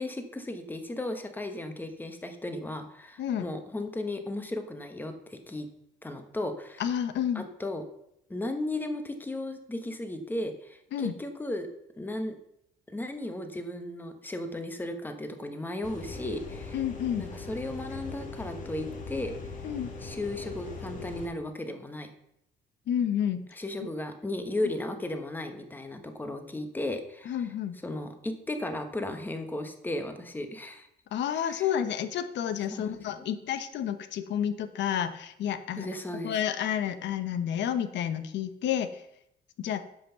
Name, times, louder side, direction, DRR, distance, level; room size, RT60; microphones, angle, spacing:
voice 1, 0.0-5.7 6.0-6.8 7.3-7.8 8.3-11.7 11.9-12.4 12.9-16.8 17.2-19.4 20.0-22.1 23.6-27.3 27.8-30.9 31.5-31.6 32.7-33.0 35.8-36.4, left 1 dB, 10° left, 7 dB, 1.2 m, -35 dB
voice 2, 6.8-7.5 10.9-11.1 16.7-17.3 19.6-19.9 22.9-23.4 27.2-27.7 31.1-35.9 36.2-39.0 39.6-39.8, left 9 dB, 75° left, 11 dB, 1.0 m, -30 dB
sound 1, 15.8-21.3, left 3 dB, 45° left, 1.9 m, -40 dB
10.0 x 5.9 x 6.9 m, 0.76 s
cardioid pair, 160°, 19 cm